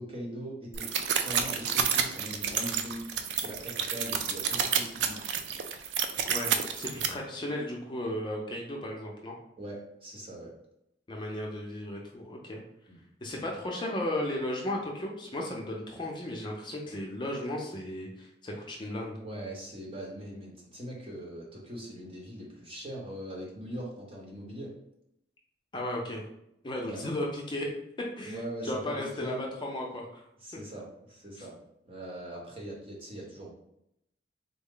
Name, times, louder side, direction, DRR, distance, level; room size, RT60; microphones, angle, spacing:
voice 1, 0.0-3.1 3.3-5.2 9.6-10.5 12.9-13.0 19.2-24.7 26.8-27.0 28.2-29.4 30.4-31.6 31.8-33.5, right 1 dB, 35° right, -2 dB, 1.0 m, -41 dB
sound 1, 0.7-7.1, right 7 dB, 90° right, 0.4 m, -29 dB
voice 2, 6.3-9.4 11.1-12.6 13.2-19.2 25.7-26.2 26.6-27.7 28.2-30.2, left 1 dB, 25° left, -1 dB, 0.6 m, -35 dB
3.7 x 2.1 x 3.7 m, 0.79 s
head